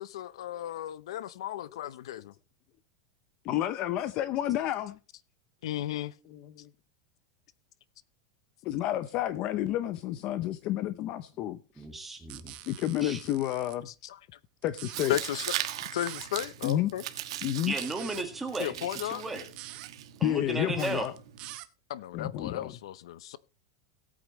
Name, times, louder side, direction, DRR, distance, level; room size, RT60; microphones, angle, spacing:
voice 1, 0.0-2.3 5.6-6.1 13.9-14.4 15.1-15.5 15.9-17.0 18.6-19.2 21.9-23.4, left 13 dB, 80° left, 0.7 m, -35 dB
voice 2, 3.4-5.0 6.3-6.7 8.6-11.8 12.7-13.9 14.6-15.1 16.6-16.9 17.4-17.7 20.2-21.1 22.1-22.7, left 12 dB, 35° left, 0.6 m, -30 dB
voice 3, 11.8-12.5 13.0-13.2 17.7-19.4 20.2-21.1, right 2 dB, 5° right, 1.7 m, -35 dB
sound 1, 12.3-13.7 14.6-15.1 15.9-16.3 17.5-18.2 19.4-19.9 21.0-21.7, right 16 dB, 35° right, 0.8 m, -45 dB
Tearing, 14.9-21.5, right 12 dB, 75° right, 1.3 m, -39 dB
17.5 x 8.6 x 3.1 m
supercardioid pair, 175°, 3 cm